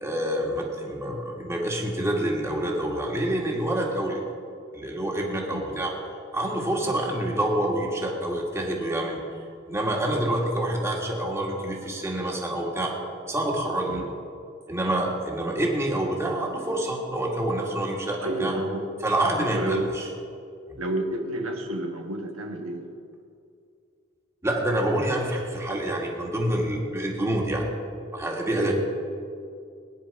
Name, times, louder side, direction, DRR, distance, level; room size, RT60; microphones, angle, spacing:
voice 1, 0.0-4.2 4.7-5.9 6.3-9.2 9.7-12.9 13.3-14.0 14.7-18.6 19.0-20.1 20.7-20.8 24.4-27.7 28.1-28.7, right 1 dB, 15° right, -2 dB, 2.3 m, -27 dB
voice 2, 18.2-18.9 19.4-19.9 20.8-22.9 28.6-28.7, right 1 dB, 75° right, 3 dB, 1.4 m, -30 dB
20.5 x 10.0 x 5.7 m, 2.4 s
head